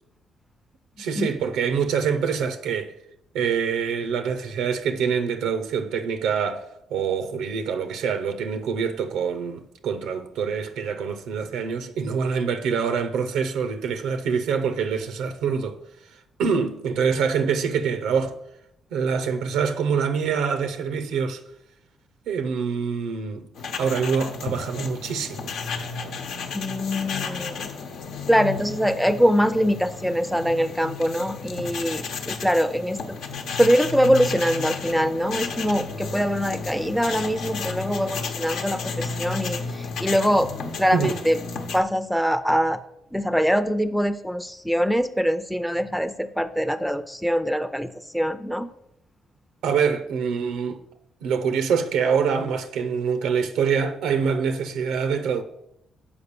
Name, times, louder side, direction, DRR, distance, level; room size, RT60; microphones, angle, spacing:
voice 1, 1.0-2.9 3.3-6.6 6.9-15.8 16.4-18.4 18.9-21.4 22.3-23.5 23.8-25.5 40.9-41.2 49.6-50.8 51.2-55.4, right 6 dB, 90° right, 0.6 m, -25 dB
sound 1, 23.5-41.8, left 4 dB, 80° left, 0.9 m, -33 dB
voice 2, 26.5-27.7 28.3-33.2 33.6-41.4 41.7-42.8 43.1-48.7, equal, ahead, 0.5 m, -23 dB
7.0 x 5.0 x 6.7 m
cardioid pair, 90°, 0 cm